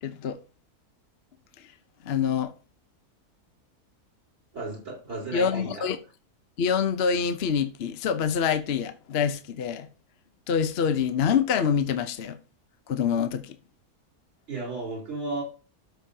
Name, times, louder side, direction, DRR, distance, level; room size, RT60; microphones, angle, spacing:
voice 1, 0.0-0.4 2.0-2.5 5.3-6.0 6.6-9.9 10.5-12.4 12.9-13.5, left 7 dB, 50° left, 0.9 m, -26 dB
voice 2, 4.5-5.9 14.5-15.4, right 3 dB, 50° right, 4.4 m, -34 dB
12.5 x 6.4 x 2.8 m
omnidirectional pair, 1.6 m